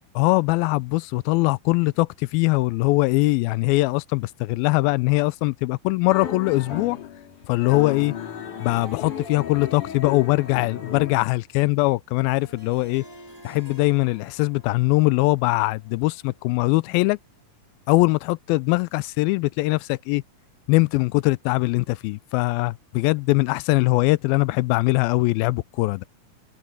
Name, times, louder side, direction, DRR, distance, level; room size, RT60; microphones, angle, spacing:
voice 1, 0.2-7.0 7.5-8.1 8.6-13.0 13.4-17.2 17.9-20.2 20.7-26.0, left 22 dB, 85° left, 2.4 m, -21 dB
sound 1, 6.1-11.2, left 8 dB, 60° left, 4.2 m, -34 dB
Harp, 12.3-17.2, equal, 5° right, 4.8 m, -50 dB
omnidirectional pair, 4.2 m